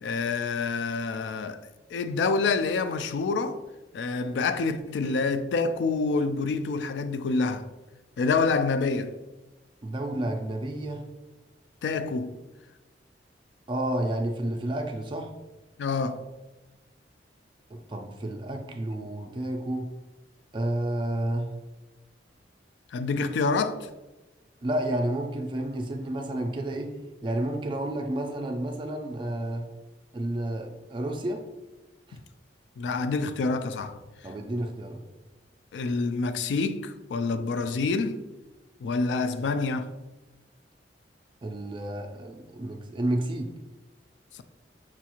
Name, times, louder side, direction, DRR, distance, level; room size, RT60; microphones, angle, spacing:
voice 1, 0.0-3.6 3.9-7.7 8.2-9.1 11.8-12.3 15.8-16.2 22.9-23.8 32.8-34.0 35.7-38.2 38.8-39.9, left 4 dB, 75° left, 0.3 m, -27 dB
voice 2, 9.8-11.0 13.7-15.3 17.7-19.9 20.5-21.5 24.6-26.9 27.2-29.6 30.1-31.4 32.1-32.2 34.2-35.0 41.4-43.5, right 1 dB, 30° right, 0.3 m, -30 dB
6.0 x 2.4 x 2.9 m
head